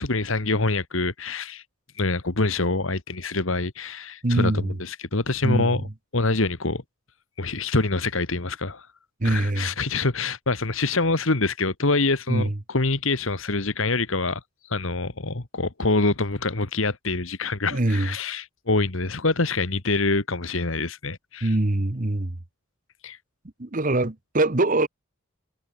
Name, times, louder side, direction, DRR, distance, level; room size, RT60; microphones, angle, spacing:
voice 1, 0.0-1.6 2.0-5.9 6.1-6.8 7.4-8.9 9.2-21.6 23.0-23.2, left 3 dB, 70° left, 1.9 m, -25 dB
voice 2, 4.2-4.8 5.4-5.7 9.2-9.7 12.3-12.5 17.7-18.1 21.4-22.3 23.6-24.9, right 2 dB, 40° right, 1.2 m, -23 dB
head